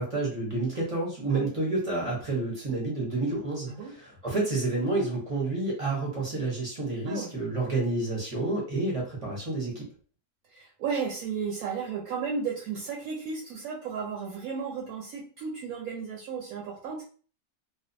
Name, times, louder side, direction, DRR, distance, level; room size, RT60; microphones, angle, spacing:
voice 1, 0.0-9.9, right 2 dB, 30° right, -3 dB, 0.6 m, -29 dB
voice 2, 10.5-17.0, right 6 dB, 70° right, 0 dB, 1.0 m, -34 dB
2.5 x 2.2 x 2.5 m, 0.41 s
omnidirectional pair, 1.6 m